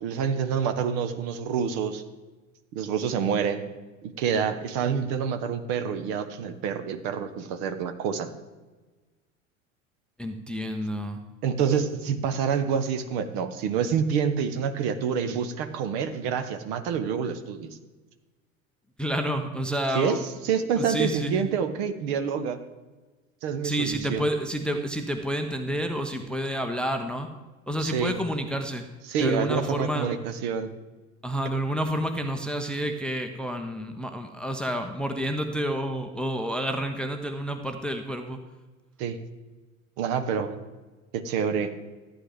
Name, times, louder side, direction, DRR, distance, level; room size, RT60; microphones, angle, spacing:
voice 1, 0.0-2.0 2.7-3.6 4.0-8.3 11.4-17.8 19.9-20.2 20.4-22.6 23.4-24.3 27.8-28.1 29.1-30.7 39.0-39.2 40.0-40.6 41.1-41.7, right 7 dB, 45° right, 9 dB, 1.1 m, -27 dB
voice 2, 10.2-11.2 19.0-20.3 20.8-21.5 23.6-27.3 27.7-28.8 29.2-30.1 31.2-38.4, equal, ahead, 6 dB, 0.7 m, -29 dB
14.5 x 9.1 x 3.5 m, 1.2 s
figure-of-eight pair, 80°, 41 cm